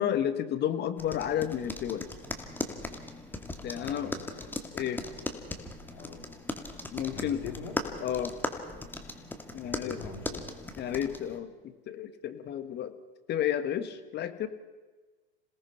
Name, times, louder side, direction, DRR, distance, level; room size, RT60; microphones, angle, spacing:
voice 1, 0.0-2.1 3.6-4.1 4.7-5.0 6.9-7.4 8.0-8.4 9.5-10.0 10.8-12.9 13.3-14.5, left 10 dB, 35° left, 11 dB, 1.6 m, -31 dB
sound 1, 1.0-11.4, left 2 dB, 5° left, 2.2 m, -38 dB
voice 2, 3.8-4.2 5.9-6.3 7.0-7.8 9.6-10.5, left 6 dB, 60° left, 4 dB, 3.9 m, -43 dB
27.5 x 18.5 x 5.8 m, 1.3 s
hypercardioid pair, 100°, 29 cm